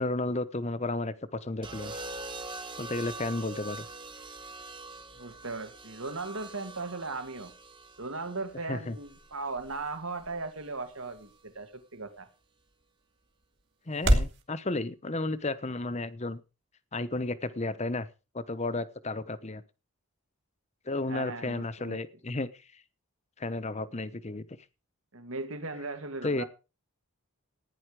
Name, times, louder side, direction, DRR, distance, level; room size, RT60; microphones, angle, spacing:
voice 1, 0.0-2.0 2.8-3.9 8.7-9.0 13.9-16.4 16.9-18.1 18.3-19.6 20.9-22.5 23.4-24.4 26.2-26.4, left 2 dB, 30° left, 14 dB, 0.9 m, -33 dB
sound 1, 1.6-9.8 11.0-11.4, right 2 dB, 25° right, 1.2 m, -44 dB
voice 2, 5.1-7.5 8.0-12.3 21.1-22.0 25.1-26.5, right 3 dB, 70° right, 8 dB, 1.9 m, -37 dB
sound 2, 8.2-14.4, right 1 dB, 55° right, 2.4 m, -34 dB
15.5 x 10.0 x 4.9 m, 0.32 s
head